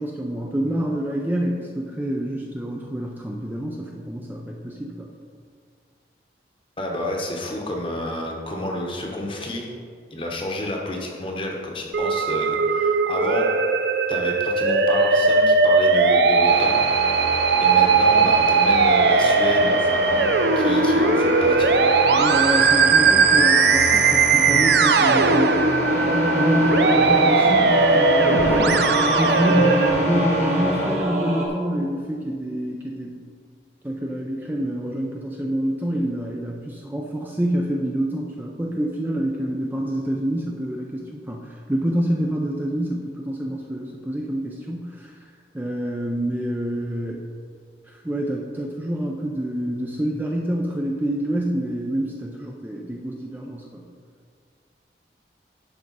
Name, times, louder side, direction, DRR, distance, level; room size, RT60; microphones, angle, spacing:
voice 1, 0.0-5.1 22.2-25.7 26.3-33.2 33.8-45.1 45.5-47.2 47.8-53.9, right 1 dB, 10° right, -1 dB, 0.5 m, -27 dB
voice 2, 6.8-9.7 10.1-13.5 14.1-17.2 17.6-21.7 29.9-30.0, left 1 dB, 30° left, 0 dB, 1.0 m, -29 dB
Musical instrument, 11.9-29.9, right 4 dB, 70° right, 0.5 m, -18 dB
sound 1, 16.5-31.0, equal, 45° left, 1.3 m, -28 dB
Singing / Musical instrument, 25.8-31.5, equal, 40° right, 1.3 m, -25 dB
11.0 x 4.9 x 4.1 m, 2.1 s
head